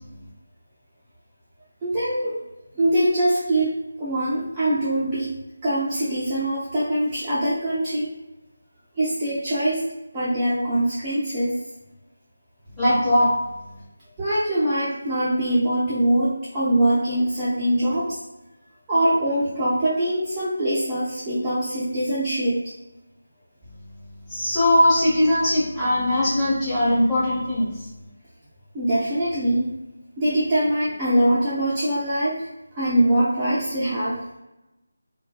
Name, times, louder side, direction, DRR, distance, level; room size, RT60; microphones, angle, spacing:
voice 1, 1.8-2.4 2.8-5.3 5.6-8.1 9.0-9.8 10.1-11.6 14.2-18.2 18.9-22.6 28.7-29.7 30.2-32.5 32.7-34.2, right 1 dB, 15° right, -12 dB, 0.5 m, -23 dB
voice 2, 12.8-13.3 24.3-27.7, left 1 dB, 5° left, -13 dB, 1.0 m, -20 dB
2.5 x 2.2 x 2.4 m, 0.97 s
figure-of-eight pair, 160°, 0 cm